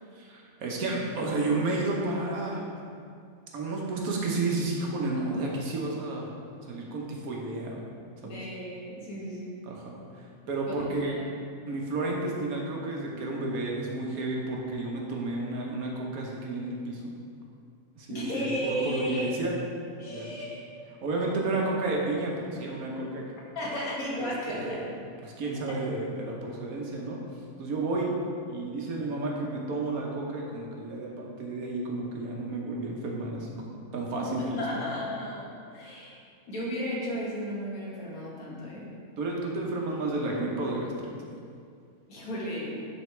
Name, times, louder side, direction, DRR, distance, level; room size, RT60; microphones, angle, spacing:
voice 1, 0.1-2.7 3.5-6.3 6.7-7.8 8.2-8.4 9.6-11.2 11.7-17.1 17.9-19.5 20.1-20.4 21.0-23.2 24.2-24.8 25.2-27.2 27.6-28.1 28.5-33.5 33.9-34.9 39.2-41.1, right 2 dB, 80° right, -2 dB, 1.4 m, -31 dB
voice 2, 8.2-9.5 10.7-11.3 18.1-19.3 20.0-20.6 23.5-24.8 34.2-36.2 36.5-38.9 42.1-42.8, equal, 75° left, -5 dB, 1.9 m, -34 dB
9.8 x 4.1 x 3.2 m, 2.3 s
omnidirectional pair, 1.5 m